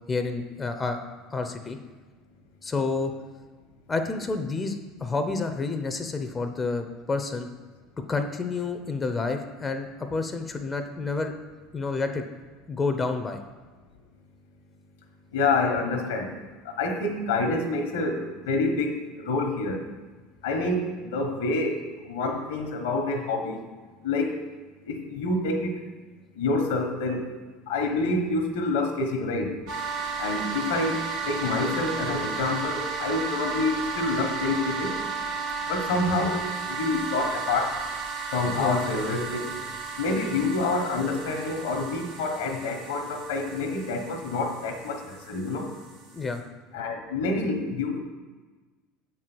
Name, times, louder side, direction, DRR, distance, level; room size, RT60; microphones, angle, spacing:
voice 1, 0.1-1.0 1.3-1.8 2.6-3.1 3.9-7.5 8.1-11.3 11.7-12.3 12.7-13.4 38.6-38.8 46.1-46.4, left 3 dB, 20° left, 7 dB, 0.8 m, -29 dB
voice 2, 15.3-16.3 16.6-19.8 20.4-23.6 24.0-24.4 24.8-25.8 26.3-27.3 27.7-29.5 30.2-35.0 35.7-37.8 38.3-39.7 40.0-45.7 46.7-48.0, left 3 dB, 80° left, 4 dB, 1.3 m, -27 dB
sound 1, 29.7-46.4, right 5 dB, 75° right, 1.9 m, -34 dB
7.5 x 4.7 x 6.1 m, 1.3 s
hypercardioid pair, 90°, 0 cm